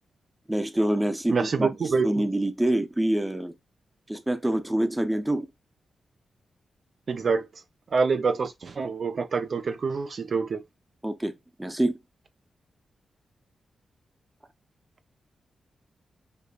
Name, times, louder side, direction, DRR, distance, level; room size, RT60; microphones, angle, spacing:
voice 1, 0.5-1.7 2.0-3.5 4.1-5.5 11.0-11.3 11.6-11.9, right 1 dB, 10° right, 0.6 m, -26 dB
voice 2, 1.3-2.1 7.1-7.5 7.9-10.6, right 5 dB, 60° right, 0.4 m, -26 dB
5.0 x 2.1 x 2.3 m
cardioid pair, 60°, 0 cm